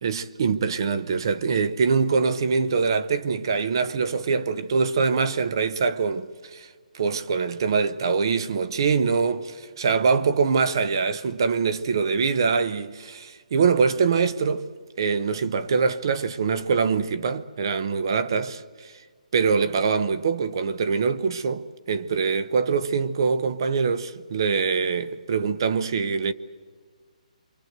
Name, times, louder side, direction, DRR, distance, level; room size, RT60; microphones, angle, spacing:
voice 1, 0.0-6.7 6.9-14.7 15.0-18.9 19.3-26.3, right 5 dB, 35° right, 0.8 m, -24 dB
28.5 x 24.5 x 8.0 m
hypercardioid pair, 180°, 4 cm